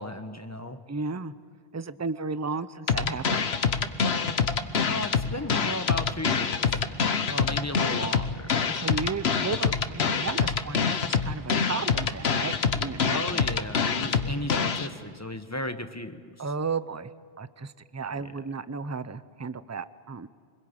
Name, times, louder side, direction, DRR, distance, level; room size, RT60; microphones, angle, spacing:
voice 1, 0.0-0.8 4.8-6.8 7.3-8.5 13.0-16.2 18.1-18.2, left 1 dB, 15° left, 8 dB, 1.1 m, -35 dB
voice 2, 0.9-1.3 1.7-3.4 8.6-13.4 16.4-17.1 17.4-20.3, right 4 dB, 20° right, 14 dB, 0.5 m, -34 dB
sound 1, 2.9-14.9, left 6 dB, 80° left, 1.3 m, -25 dB
25.0 x 22.0 x 8.8 m, 2.1 s
omnidirectional pair, 1.1 m